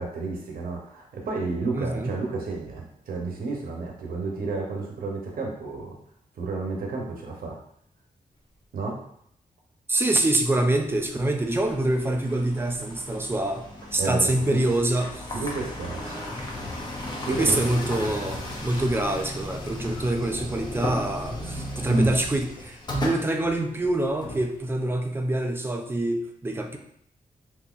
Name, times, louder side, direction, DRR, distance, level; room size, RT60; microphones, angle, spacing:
voice 1, 0.0-5.9 6.4-7.6 8.7-9.0 14.0-14.7 15.4-16.2 17.2-17.6 21.9-22.1, right 3 dB, 80° right, -1 dB, 0.8 m, -31 dB
voice 2, 1.7-2.1 9.9-15.3 16.0-16.5 17.3-26.8, right 1 dB, 15° right, 4 dB, 0.3 m, -26 dB
sound 1, 10.8-24.9, left 1 dB, 30° left, 0.6 m, -36 dB
3.7 x 2.7 x 2.4 m, 0.71 s
wide cardioid pair, 155°, 15 cm